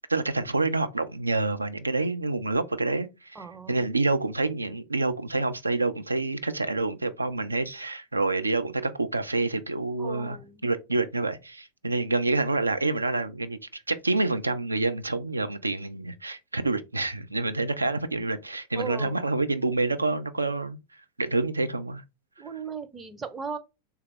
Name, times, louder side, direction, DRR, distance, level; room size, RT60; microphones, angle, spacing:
voice 1, 0.1-22.0, right 3 dB, 80° right, 0.3 m, -28 dB
voice 2, 3.3-3.8 10.0-10.6 18.8-19.2 22.4-23.6, right 5 dB, 20° right, 0.5 m, -37 dB
3.4 x 2.3 x 3.3 m
figure-of-eight pair, 90°, 0 cm